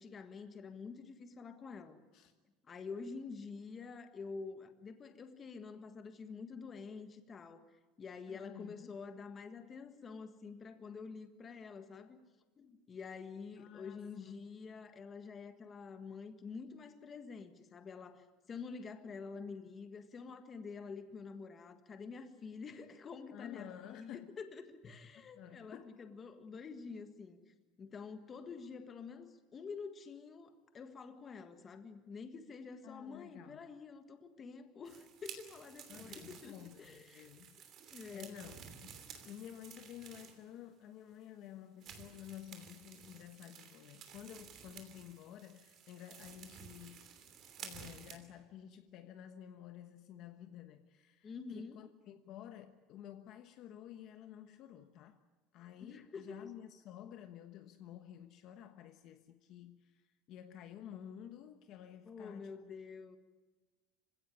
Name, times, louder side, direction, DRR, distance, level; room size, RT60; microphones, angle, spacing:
voice 1, 0.0-2.0 2.7-7.7 8.0-12.2 12.6-27.4 27.8-37.3 37.9-38.5 51.2-51.8 55.8-56.5 62.0-63.2, left 5 dB, 20° left, 1.6 m, -48 dB
voice 2, 8.3-9.0 13.6-14.4 23.3-24.3 25.1-25.9 32.8-33.7 35.9-37.6 37.9-47.1 47.6-55.2 55.5-62.5, left 10 dB, 40° left, 1.2 m, -52 dB
sound 1, 34.9-40.5 41.1-41.2 41.8-48.2, right 7 dB, 35° right, 2.9 m, -53 dB
26.5 x 16.5 x 9.9 m
cardioid pair, 175°, 0 cm